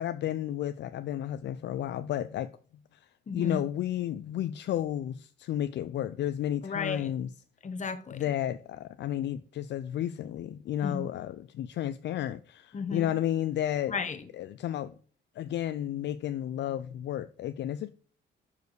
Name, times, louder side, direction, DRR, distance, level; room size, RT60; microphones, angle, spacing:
voice 1, 0.0-2.5 3.3-7.3 8.1-14.0 14.3-14.9 15.4-17.9, left 11 dB, 65° left, 0.4 m, -32 dB
voice 2, 3.3-3.6 6.6-7.1 7.6-8.2 10.8-11.0 12.7-13.1 13.9-14.2, left 5 dB, 40° left, 1.2 m, -33 dB
6.8 x 4.7 x 4.7 m
cardioid pair, 90°, 20 cm